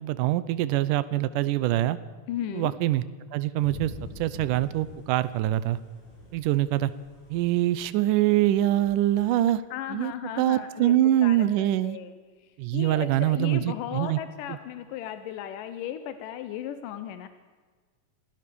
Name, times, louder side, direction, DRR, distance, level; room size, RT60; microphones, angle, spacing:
voice 1, 0.0-2.0 2.5-3.0 3.3-3.9 4.2-5.8 6.3-6.9 7.3-9.6 9.9-10.1 10.4-12.0 12.6-14.2, right 14 dB, 80° right, 15 dB, 2.4 m, -24 dB
voice 2, 2.3-2.8 9.3-9.4 9.7-11.0 11.2-12.1 12.4-17.3, left 10 dB, 85° left, 11 dB, 2.5 m, -36 dB
Thunder / Rain, 3.6-9.3, left 1 dB, 60° left, 7.3 m, -46 dB
26.5 x 17.0 x 6.9 m, 1.5 s
omnidirectional pair, 3.7 m